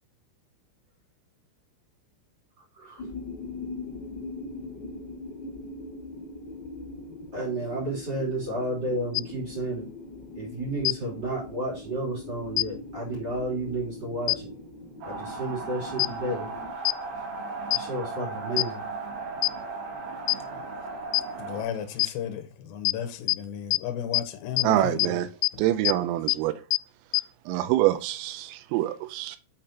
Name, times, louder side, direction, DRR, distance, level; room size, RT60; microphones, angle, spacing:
sound 1, 3.0-16.7, left 3 dB, 30° left, 2.1 m, -41 dB
voice 1, 7.3-9.8 10.4-14.5 15.0-16.4 17.7-18.8, right 1 dB, 25° right, 2.6 m, -31 dB
sound 2, 9.2-9.3 10.9-11.0 12.6-12.7 14.3-14.4 16.0-16.1 16.9-17.0 17.7-17.8 18.6-18.7 19.4-19.5 20.3-20.4 21.1-21.2 22.0-22.1 22.9-23.0 23.3-23.4 23.7-23.8 24.1-24.2 24.6-24.7 25.0-25.1 25.4-25.5 25.9-26.0 26.3-26.4 26.7-26.8 27.1-27.2, left 27 dB, 85° left, 3.2 m, -22 dB
sound 3, 15.0-21.6, right 3 dB, 65° right, 4.1 m, -36 dB
voice 2, 21.4-25.1, left 8 dB, 70° left, 2.9 m, -34 dB
voice 3, 24.6-25.3 25.6-26.5 27.5-29.4, right 14 dB, 90° right, 3.3 m, -25 dB
8.6 x 4.2 x 4.3 m
omnidirectional pair, 5.9 m